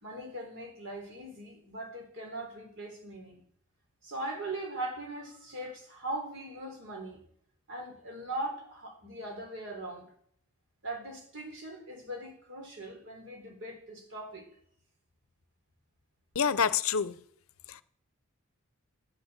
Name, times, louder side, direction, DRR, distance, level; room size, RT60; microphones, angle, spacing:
voice 1, 0.0-3.4 4.0-7.2 7.7-10.1 10.8-14.5, right 1 dB, 55° right, 3.9 m, -40 dB
voice 2, 16.3-17.1 17.7-17.8, left 7 dB, 70° left, 0.6 m, -27 dB
11.0 x 9.3 x 8.1 m
head